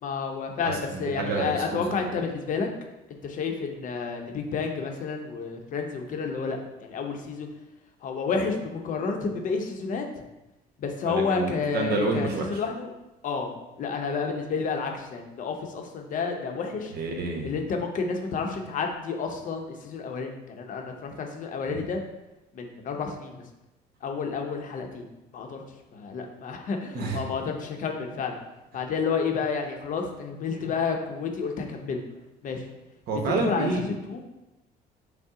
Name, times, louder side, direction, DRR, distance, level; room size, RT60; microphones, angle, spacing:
voice 1, 0.0-2.7 3.1-7.5 8.0-10.1 10.8-12.9 13.2-16.9 17.4-22.0 22.5-23.4 24.0-25.0 25.3-25.6 25.9-28.4 28.7-32.0 32.4-32.7 33.3-34.2, left 5 dB, 50° left, 3 dB, 0.7 m, -30 dB
voice 2, 0.9-2.2 11.0-12.5 16.9-17.5 21.7-21.9 26.9-27.2 33.1-33.9, right 3 dB, 70° right, 2 dB, 0.9 m, -29 dB
5.4 x 2.0 x 3.6 m, 0.97 s
cardioid pair, 110°, 17 cm